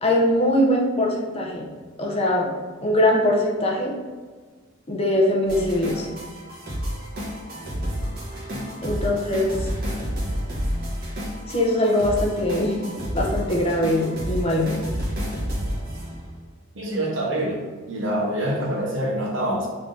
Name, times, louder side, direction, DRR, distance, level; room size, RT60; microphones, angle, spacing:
voice 1, 0.0-1.7 2.0-2.5 2.8-3.9 4.9-6.1 8.8-9.7 11.5-14.7, left 1 dB, 30° left, -1 dB, 0.6 m, -22 dB
sound 1, 5.5-16.4, equal, 45° right, 1.1 m, -30 dB
voice 2, 16.7-17.6 17.9-19.7, right 1 dB, 70° right, -2 dB, 0.9 m, -25 dB
3.4 x 2.7 x 3.7 m, 1.5 s
head